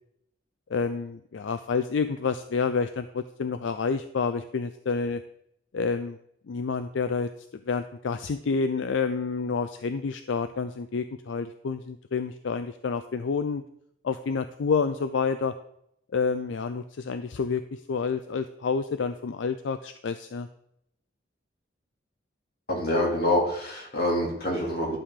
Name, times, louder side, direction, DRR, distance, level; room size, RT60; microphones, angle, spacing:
voice 1, 0.7-5.2 5.7-6.2 6.5-7.3 7.7-13.6 14.0-15.5 16.1-20.5, left 5 dB, 80° left, 10 dB, 0.4 m, -29 dB
voice 2, 22.7-25.0, left 1 dB, 55° left, -1 dB, 2.4 m, -26 dB
11.5 x 6.8 x 3.7 m, 0.75 s
head